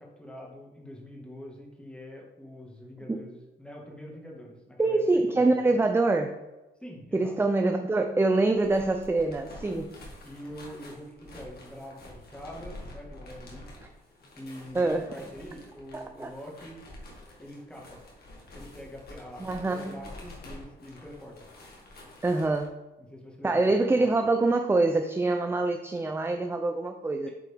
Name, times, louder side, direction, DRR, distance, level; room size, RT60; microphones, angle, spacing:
voice 1, 0.0-5.9 6.8-7.4 8.4-8.5 10.2-13.6 14.0-14.1 14.4-16.8 17.4-18.0 18.5-21.5 23.0-24.1 27.2-27.3, equal, 5° left, -1 dB, 1.8 m, -44 dB
voice 2, 4.8-6.3 7.1-9.9 14.7-15.1 15.9-16.3 19.4-20.0 22.2-22.7 23.4-27.3, right 2 dB, 10° right, 6 dB, 0.4 m, -25 dB
sound 1, 8.5-22.7, left 1 dB, 50° left, 1.9 m, -48 dB
8.3 x 3.8 x 3.5 m, 1.1 s
cardioid pair, 90°, 20 cm